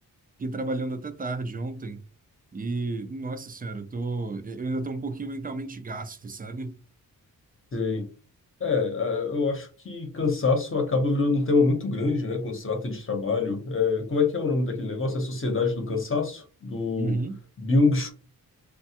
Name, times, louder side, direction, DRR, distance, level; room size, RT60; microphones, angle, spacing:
voice 1, 0.4-2.0 2.5-6.8 17.0-17.4, right 3 dB, 25° right, 0.3 m, -32 dB
voice 2, 7.7-8.1 8.6-17.2 17.6-18.1, left 3 dB, 35° left, 0.8 m, -25 dB
3.2 x 2.2 x 2.8 m
wide cardioid pair, 110°, 37 cm